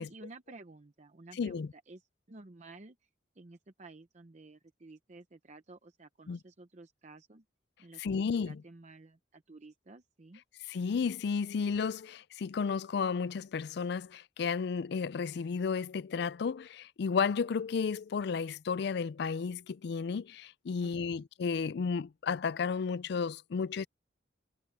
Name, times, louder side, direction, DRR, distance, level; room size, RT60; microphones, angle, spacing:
voice 1, 0.0-3.1 3.3-7.4 7.8-10.4 20.8-21.2, right 2 dB, 40° right, 0.8 m, -53 dB
voice 2, 1.4-1.7 6.3-6.4 8.0-8.6 10.7-23.9, left 5 dB, 60° left, 0.4 m, -33 dB
head